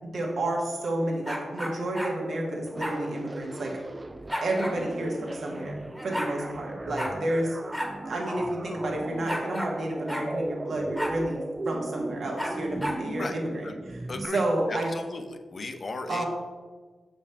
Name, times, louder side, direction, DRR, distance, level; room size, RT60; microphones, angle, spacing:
voice 1, 0.0-3.7 4.4-5.8 6.0-7.6 8.1-14.9 16.1-16.3, right 1 dB, 70° right, -1 dB, 1.4 m, -30 dB
sound 1, 1.2-2.2 2.8-3.0 4.3-4.8 5.7-5.8 5.9-6.3 7.0-7.2 7.7-7.9 8.2-8.3 9.3-9.8 10.1-10.3 11.0-11.2 12.4-13.0, equal, ahead, 1.1 m, -32 dB
sound 2, 2.7-14.3, right 2 dB, 25° right, 0.3 m, -37 dB
voice 2, 14.1-14.4 14.7-16.3, left 3 dB, 50° left, 7 dB, 0.6 m, -36 dB
6.5 x 5.1 x 3.4 m, 1.4 s
cardioid pair, 55°, 0 cm